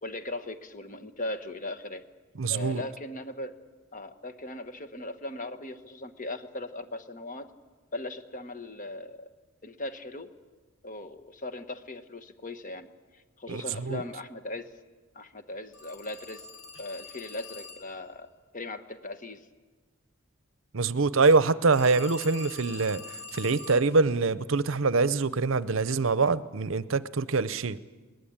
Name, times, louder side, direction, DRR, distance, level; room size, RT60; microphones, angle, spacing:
voice 1, 0.0-2.1 2.5-3.5 3.9-7.5 7.9-9.3 9.6-10.3 10.8-14.7 15.1-16.5 16.8-19.5, left 2 dB, 35° left, 1.3 m, -39 dB
voice 2, 2.4-2.8 13.5-14.0 20.7-23.0 23.3-27.8, right 4 dB, 60° right, 0.7 m, -24 dB
Telephone, 15.7-18.0 21.7-23.9, left 3 dB, 75° left, 2.9 m, -44 dB
22.0 x 19.5 x 8.7 m
head